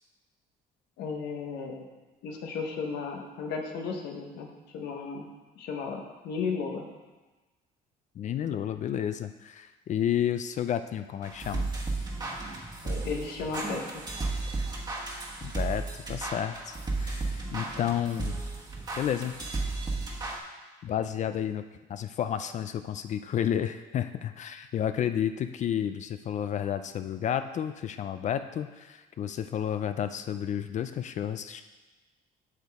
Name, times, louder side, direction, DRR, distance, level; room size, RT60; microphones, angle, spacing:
voice 1, 1.0-1.9 2.2-5.3 5.5-6.8 12.8-14.0, left 5 dB, 80° left, 2 dB, 1.2 m, -35 dB
voice 2, 8.2-11.7 15.4-18.4 19.0-19.4 20.8-21.6 21.9-31.6, left 9 dB, 45° left, 10 dB, 0.4 m, -31 dB
sound 1, 11.2-20.4, right 3 dB, 25° right, 1.3 m, -34 dB
8.0 x 6.5 x 3.5 m, 1.2 s
cardioid pair, 110°, 17 cm